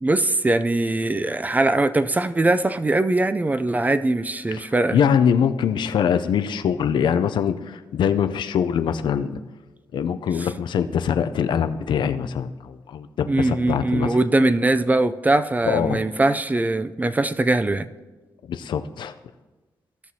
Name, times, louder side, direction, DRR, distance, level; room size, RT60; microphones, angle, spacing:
voice 1, 0.0-5.0 10.4-10.5 13.3-17.9, right 2 dB, 20° right, 12 dB, 0.4 m, -21 dB
voice 2, 4.9-9.4 9.9-14.1 15.7-16.0 18.5-19.1, left 8 dB, 80° left, 10 dB, 0.4 m, -23 dB
16.5 x 6.0 x 2.8 m, 1.2 s
cardioid pair, 70°, 8 cm